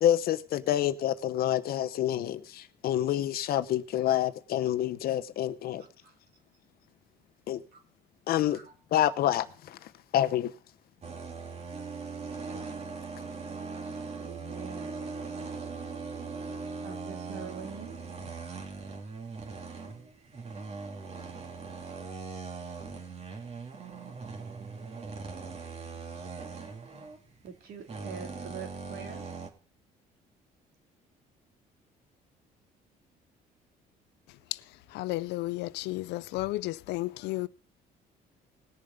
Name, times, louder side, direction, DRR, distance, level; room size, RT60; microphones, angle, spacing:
voice 1, 0.0-5.8 7.5-7.6 8.3-8.6 8.9-9.8 10.1-10.5, left 12 dB, 65° left, 0.9 m, -27 dB
voice 2, 5.8-6.1 7.7-7.8 8.5-8.7 14.1-15.0 16.8-18.0 27.4-29.3, right 6 dB, 70° right, 2.8 m, -44 dB
sound 1, 11.0-29.5, right 4 dB, 40° right, 2.2 m, -40 dB
voice 3, 34.9-37.5, left 19 dB, 85° left, 0.5 m, -33 dB
19.0 x 6.8 x 5.2 m
cardioid pair, 110°, 17 cm